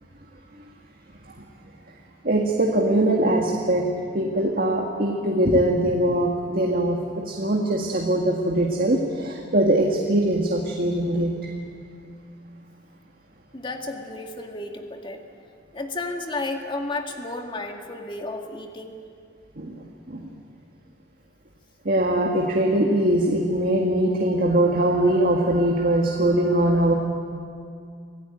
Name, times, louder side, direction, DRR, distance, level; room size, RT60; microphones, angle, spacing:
voice 1, 2.2-3.9 4.1-7.0 7.3-11.4 19.6-20.3 21.9-26.9, right 1 dB, 55° right, 0 dB, 1.8 m, -22 dB
voice 2, 13.5-15.2 15.7-19.0, left 2 dB, 30° left, 3 dB, 2.0 m, -32 dB
25.5 x 16.0 x 8.9 m, 2.3 s
head